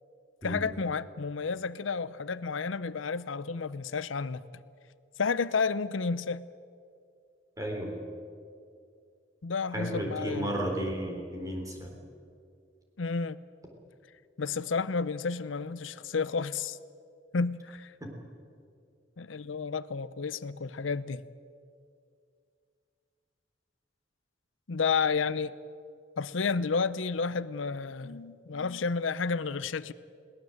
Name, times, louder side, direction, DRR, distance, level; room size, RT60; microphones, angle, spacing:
voice 1, 0.4-4.4 5.2-6.5 9.4-10.5 13.0-13.4 14.4-16.8 17.3-17.9 19.2-21.2 24.7-25.5 26.2-29.9, left 5 dB, 85° left, 0.7 m, -31 dB
voice 2, 7.6-8.0 9.7-11.9 18.0-18.1, equal, 20° right, 3.8 m, -33 dB
21.5 x 18.5 x 7.8 m
head